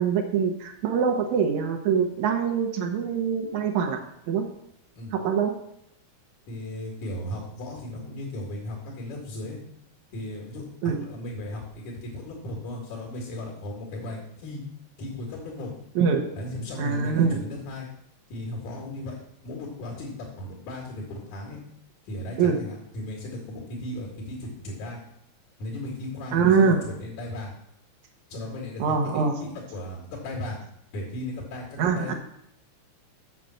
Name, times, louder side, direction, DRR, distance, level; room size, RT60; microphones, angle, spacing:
voice 1, 0.0-4.5 5.1-5.5 10.8-11.0 16.0-16.3 16.8-17.4 22.4-22.6 26.3-26.8 28.8-29.3 31.8-32.1, right 6 dB, 80° right, 2 dB, 2.4 m, -24 dB
voice 2, 6.5-9.6 10.1-14.6 15.0-15.7 16.3-17.9 18.3-19.2 19.4-21.6 22.1-25.0 25.6-27.5 28.3-30.6 30.9-32.1, left 1 dB, 80° left, -1 dB, 3.6 m, -36 dB
7.3 x 6.6 x 7.6 m, 0.75 s
omnidirectional pair, 3.4 m